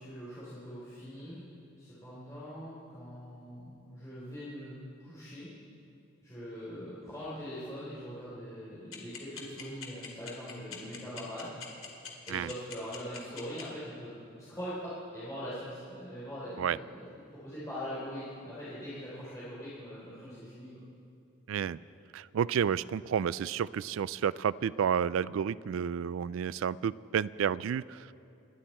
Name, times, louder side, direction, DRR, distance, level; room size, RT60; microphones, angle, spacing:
voice 1, 0.0-1.4 1.8-4.8 5.0-5.5 6.2-11.5 12.3-17.1 17.3-20.7, equal, 15° left, -10 dB, 3.7 m, -42 dB
sound 1, 8.9-13.6, left 7 dB, 85° left, 2.4 m, -42 dB
voice 2, 21.5-21.8 22.1-28.1, right 8 dB, 80° right, 20 dB, 0.3 m, -31 dB
28.5 x 11.5 x 4.3 m, 2.6 s
head